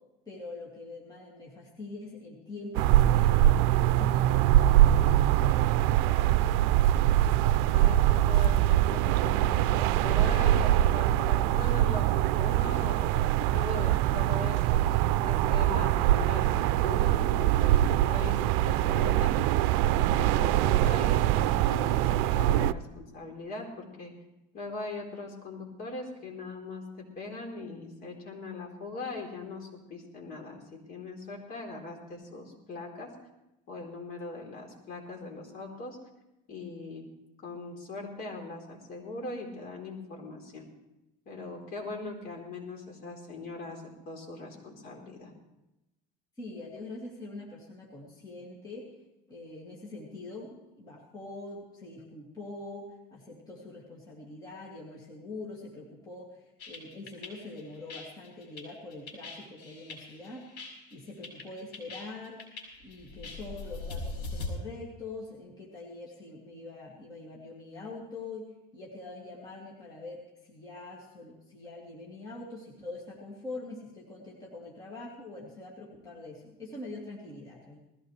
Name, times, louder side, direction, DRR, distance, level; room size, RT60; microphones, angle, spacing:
voice 1, 0.3-3.7 4.0-6.2 46.4-49.0 49.3-62.4 62.8-68.5 68.7-77.8, left 2 dB, 20° left, -4 dB, 2.5 m, -44 dB
sound 1, 2.7-22.7, right 13 dB, 75° right, 0.5 m, -23 dB
voice 2, 7.7-19.3 19.8-24.1 24.5-33.1 33.7-36.0 36.5-37.1 37.4-40.7 41.3-45.3, left 3 dB, 45° left, -1 dB, 3.8 m, -40 dB
sound 2, 56.6-64.5, left 3 dB, 80° left, 5.7 m, -41 dB
20.0 x 15.5 x 3.3 m, 0.92 s
cardioid pair, 160°, 21 cm